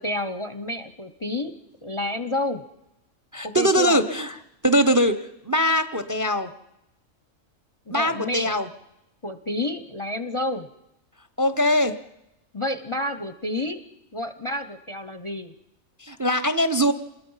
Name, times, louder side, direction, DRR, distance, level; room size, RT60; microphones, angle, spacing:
voice 1, 0.0-1.5 1.8-2.6 3.4-4.0 7.9-8.6 9.2-10.7 12.5-13.8 14.1-15.5, left 1 dB, 30° left, 10 dB, 0.7 m, -29 dB
voice 2, 3.3-4.3 4.6-5.2 5.5-6.5 7.9-8.7 11.4-11.9 16.0-16.9, equal, 15° right, 11 dB, 0.7 m, -21 dB
27.0 x 21.0 x 5.6 m, 0.90 s
omnidirectional pair, 1.4 m